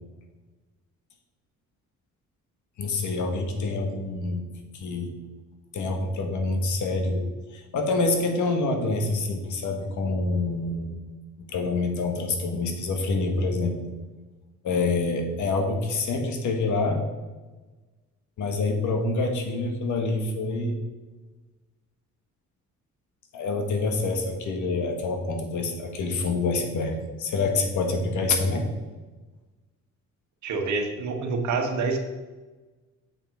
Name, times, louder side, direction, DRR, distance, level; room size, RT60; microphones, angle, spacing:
voice 1, 2.8-4.5 4.7-5.1 5.7-7.2 7.5-11.0 11.5-13.9 14.6-17.0 18.4-20.8 23.3-28.6, left 3 dB, 75° left, 4 dB, 1.6 m, -26 dB
voice 2, 30.4-32.0, right 4 dB, 70° right, 5 dB, 1.3 m, -27 dB
7.0 x 5.8 x 5.0 m, 1.2 s
cardioid pair, 90°, 30 cm